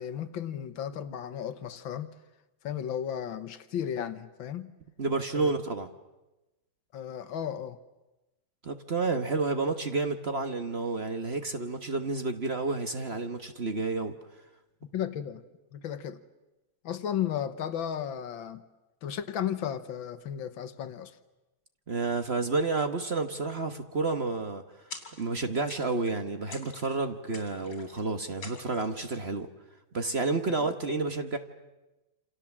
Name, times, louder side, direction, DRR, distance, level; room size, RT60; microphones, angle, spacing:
voice 1, 0.0-2.1 2.6-4.7 5.3-5.5 6.9-7.8 14.9-15.4 15.7-16.2 16.8-18.6 19.0-21.2 30.5-30.6, left 9 dB, 80° left, 1.9 m, -34 dB
voice 2, 5.0-5.9 8.6-14.2 21.9-24.6 25.2-29.5 29.9-31.4, right 3 dB, 35° right, 1.3 m, -30 dB
sound 1, 24.9-25.4 25.7-26.2 26.5-27.0 27.3-28.0 28.4-29.0, left 4 dB, 60° left, 4.0 m, -46 dB
28.5 x 27.5 x 7.3 m
omnidirectional pair, 2.1 m